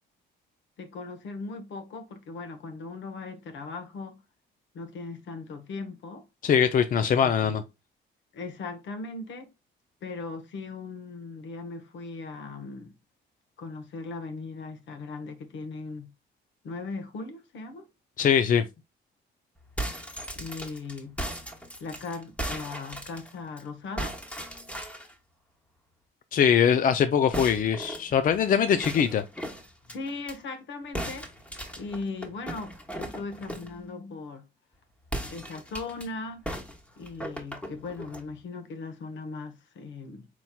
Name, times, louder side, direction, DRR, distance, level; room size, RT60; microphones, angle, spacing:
voice 1, 0.8-4.2 4.7-6.2 8.3-9.5 10.0-12.9 13.6-16.1 16.6-17.9 20.3-21.2 21.8-24.2 29.9-31.3 31.8-34.4 35.3-36.5 37.0-40.3, left 3 dB, 70° left, 1.1 m, -38 dB
voice 2, 6.4-7.6 18.2-18.7 26.3-29.2, left 8 dB, 45° left, 0.4 m, -22 dB
sound 1, 19.6-23.6 24.0-25.1 27.3-30.4 30.9-33.8 35.0-36.1 36.4-38.3, right 1 dB, 5° left, 1.1 m, -37 dB
4.4 x 4.2 x 2.2 m
cardioid pair, 90°, 20 cm